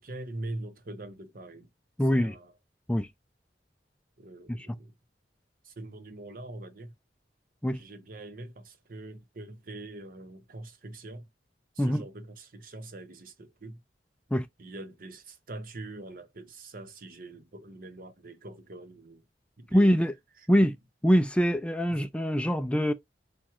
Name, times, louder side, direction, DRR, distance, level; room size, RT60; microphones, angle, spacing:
voice 1, 0.0-1.7 2.1-2.5 4.2-4.9 5.6-6.9 7.7-11.3 11.7-13.8 14.6-19.3 19.6-20.0 21.9-22.0, right 2 dB, 55° right, 0.9 m, -43 dB
voice 2, 2.0-2.3 2.9-3.1 4.5-4.7 7.6-7.8 11.8-12.0 14.3-14.5 19.7-20.1 20.5-20.8 21.0-22.9, equal, 5° left, 0.4 m, -24 dB
4.5 x 2.4 x 4.7 m
head